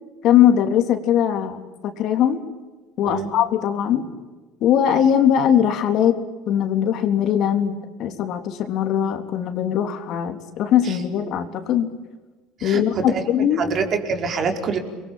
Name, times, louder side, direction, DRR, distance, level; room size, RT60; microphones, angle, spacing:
voice 1, 0.2-2.4 3.0-4.1 4.6-6.2 6.5-11.9 12.6-13.7, left 9 dB, 55° left, 6 dB, 3.6 m, -20 dB
voice 2, 12.6-14.8, right 5 dB, 40° right, 4 dB, 4.9 m, -26 dB
30.0 x 22.5 x 8.7 m, 1.2 s
cardioid pair, 135°, 0 cm